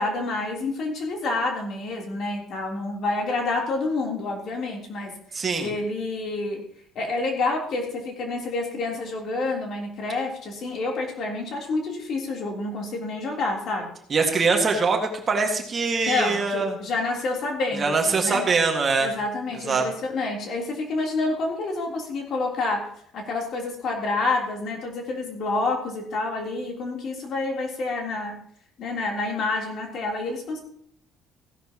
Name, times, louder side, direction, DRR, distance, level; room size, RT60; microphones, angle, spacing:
voice 1, 0.0-6.6 6.9-13.9 16.1-18.4 19.0-28.4 28.8-30.6, left 3 dB, 50° left, 0 dB, 3.4 m, -28 dB
voice 2, 5.3-5.7 14.1-16.8 17.8-19.1 19.7-19.8, right 4 dB, 30° right, 2 dB, 1.9 m, -23 dB
16.5 x 11.0 x 3.0 m, 0.64 s
cardioid pair, 135°, 0 cm